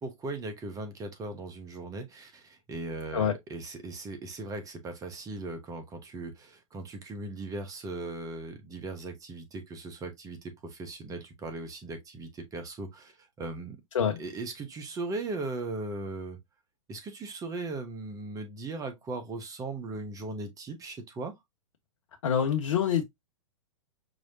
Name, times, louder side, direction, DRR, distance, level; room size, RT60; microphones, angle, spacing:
voice 1, 0.0-13.8 14.2-16.4 16.9-21.3, right 3 dB, 20° right, 1.2 m, -38 dB
voice 2, 22.2-23.0, left 8 dB, 65° left, 0.9 m, -25 dB
5.1 x 3.2 x 2.7 m
hypercardioid pair, 110°, 17 cm